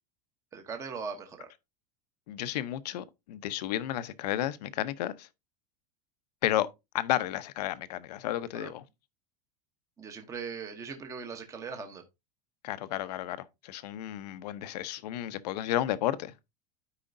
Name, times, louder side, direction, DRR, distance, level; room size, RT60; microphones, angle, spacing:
voice 1, 0.5-1.5 8.5-8.7 10.0-12.0, right 5 dB, 15° right, 0.9 m, -39 dB
voice 2, 2.3-5.3 6.4-6.7 6.9-8.8 12.6-16.3, left 13 dB, 85° left, 0.8 m, -32 dB
12.5 x 5.0 x 2.6 m
supercardioid pair, 160°, 20 cm